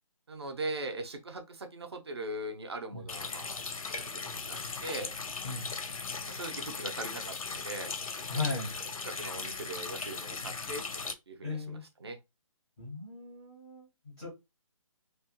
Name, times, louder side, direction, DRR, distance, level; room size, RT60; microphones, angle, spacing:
voice 1, 0.3-3.6 4.0-4.1 4.5-5.1 6.3-7.9 9.0-12.2, right 2 dB, 50° right, 0.6 m, -40 dB
Water tap faucet, 3.1-11.1, left 4 dB, 90° left, 0.6 m, -38 dB
voice 2, 8.3-8.8 10.4-10.5 11.4-11.8 12.8-14.3, left 3 dB, 5° left, 0.6 m, -37 dB
3.0 x 2.2 x 2.8 m
hypercardioid pair, 180°, 18 cm